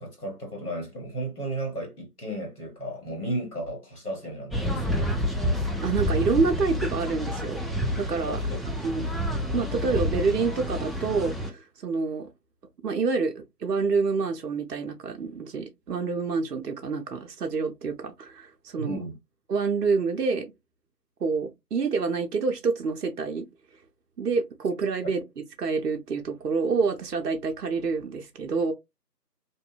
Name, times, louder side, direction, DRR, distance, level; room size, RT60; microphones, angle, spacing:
voice 1, 0.0-5.1 8.3-8.6 18.8-19.1, right 1 dB, 65° left, 1.6 m, -34 dB
sound 1, 4.5-11.5, equal, ahead, 0.4 m, -29 dB
voice 2, 5.6-7.6 8.0-8.4 8.8-9.1 9.5-12.3 12.8-19.0 19.5-20.5 21.2-23.5 24.2-28.7, right 4 dB, 70° right, 0.6 m, -27 dB
2.6 x 2.3 x 2.3 m
figure-of-eight pair, 175°, 49 cm